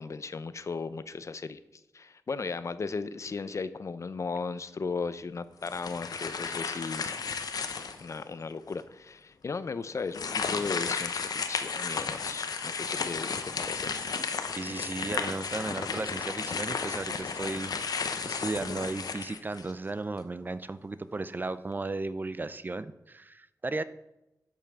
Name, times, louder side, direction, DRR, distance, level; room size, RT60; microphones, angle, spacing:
voice 1, 0.0-1.6 1.9-7.6 8.0-14.1, left 4 dB, 50° left, 14 dB, 0.5 m, -36 dB
sound 1, 5.6-8.2 8.7-8.8 10.1-19.9, left 5 dB, 75° left, 0.9 m, -33 dB
voice 2, 14.5-18.0 18.2-23.8, right 3 dB, 30° right, 14 dB, 0.4 m, -35 dB
11.5 x 5.6 x 6.1 m, 0.93 s
wide cardioid pair, 100°, 7 cm